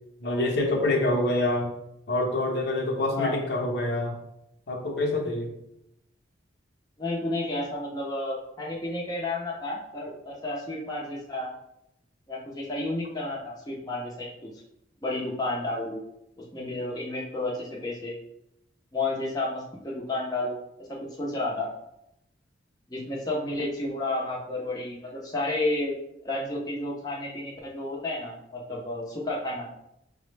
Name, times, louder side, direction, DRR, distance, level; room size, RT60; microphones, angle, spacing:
voice 1, 0.2-1.7 2.1-4.1 4.7-5.5, left 2 dB, 60° left, 1 dB, 0.7 m, -26 dB
voice 2, 3.1-3.4 7.0-11.5 12.3-14.5 15.0-16.0 16.4-18.1 18.9-20.6 20.9-21.7 22.9-25.9 26.2-29.7, left 2 dB, 20° left, -4 dB, 0.5 m, -31 dB
5.3 x 2.0 x 3.2 m, 0.81 s
head